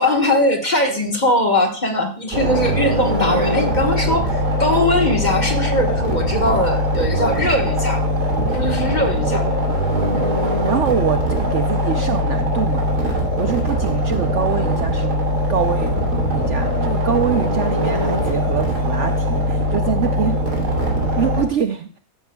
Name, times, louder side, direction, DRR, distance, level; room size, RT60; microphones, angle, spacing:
voice 1, 0.0-8.0 8.5-9.4, left 1 dB, 30° left, 4 dB, 1.4 m, -20 dB
sound 1, 2.3-21.4, equal, 80° right, 3.3 m, -21 dB
voice 2, 10.1-15.2 15.5-15.9 16.3-20.4 21.2-22.0, right 8 dB, 60° right, 8 dB, 0.8 m, -24 dB
14.0 x 10.0 x 2.2 m, 0.37 s
omnidirectional pair, 1.7 m